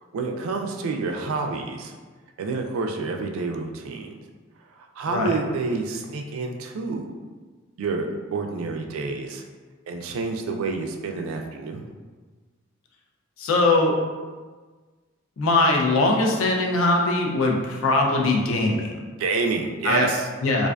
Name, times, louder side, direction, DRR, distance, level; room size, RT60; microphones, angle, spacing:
voice 1, 0.1-1.9 2.4-4.2 5.0-7.0 7.8-9.4 9.9-11.8 19.2-20.3, right 4 dB, 85° right, 4 dB, 0.3 m, -28 dB
voice 2, 13.4-14.0 15.4-19.0 19.8-20.1 20.4-20.7, left 2 dB, 75° left, 1 dB, 0.4 m, -21 dB
2.4 x 2.3 x 2.2 m, 1.4 s
head